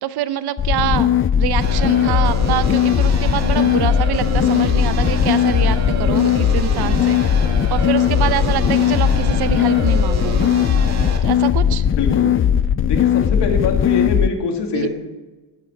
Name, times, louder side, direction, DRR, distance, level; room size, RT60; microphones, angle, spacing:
voice 1, 0.0-1.1 1.4-7.3 7.7-10.5 11.2-11.8 14.7-14.9, right 11 dB, 65° right, 13 dB, 0.9 m, -25 dB
sound 1, 0.6-14.3, left 9 dB, 30° left, 0.4 m, -17 dB
sound 2, 1.6-11.2, right 4 dB, 40° right, 2.1 m, -29 dB
voice 2, 11.8-12.3 12.9-14.9, left 4 dB, 75° left, 3 dB, 2.6 m, -23 dB
16.0 x 12.5 x 4.6 m, 1.2 s
cardioid pair, 160°, 41 cm